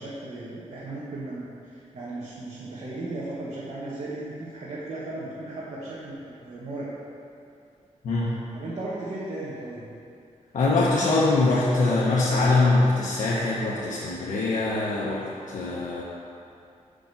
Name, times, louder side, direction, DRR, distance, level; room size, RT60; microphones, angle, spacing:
voice 1, 0.0-6.9 8.2-9.8, right 2 dB, 60° right, -8 dB, 1.3 m, -36 dB
voice 2, 10.5-15.3 15.5-16.0, left 2 dB, 85° left, -6 dB, 0.9 m, -23 dB
5.7 x 5.1 x 6.6 m, 2.5 s
wide cardioid pair, 115°, 13 cm